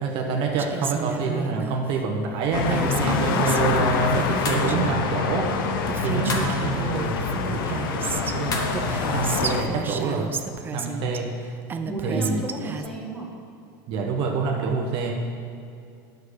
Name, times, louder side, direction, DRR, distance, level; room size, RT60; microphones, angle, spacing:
voice 1, 0.0-5.5 6.0-10.3 10.7-11.3 12.0-12.4 13.9-15.1, right 4 dB, 50° right, 1 dB, 1.1 m, -27 dB
Female speech woman speaking, 0.6-1.8 2.7-5.0 5.6-5.7 5.9-8.4 8.7-11.2 11.7-12.9, right 5 dB, 20° right, 0.4 m, -32 dB
sound 1, 2.5-9.6, left 5 dB, 90° left, 0.9 m, -26 dB
sound 2, 4.4-4.7 6.3-6.6 8.5-8.8, left 3 dB, 30° left, 1.2 m, -29 dB
voice 2, 11.8-13.3, right 1 dB, ahead, -4 dB, 1.7 m, -33 dB
9.6 x 6.7 x 6.4 m, 2.4 s
supercardioid pair, 145°, 11 cm